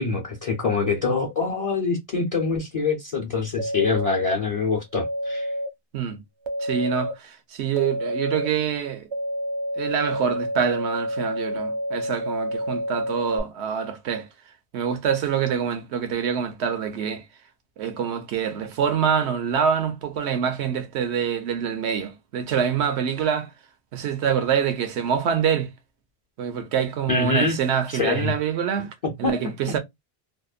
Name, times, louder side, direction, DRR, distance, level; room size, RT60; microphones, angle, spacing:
voice 1, 0.0-5.5 27.1-27.6 27.9-28.3 29.0-29.3, left 4 dB, 45° left, 0.5 m, -25 dB
sound 1, 3.6-4.3 4.9-5.7 6.5-7.1 7.7-8.5 9.1-13.4, equal, 50° right, 0.3 m, -28 dB
voice 2, 6.6-9.1 9.8-14.3 14.7-17.2 17.8-23.5 23.9-25.7 26.4-28.9 29.2-29.8, right 7 dB, 90° right, 0.9 m, -25 dB
2.8 x 2.0 x 2.3 m
omnidirectional pair, 1.1 m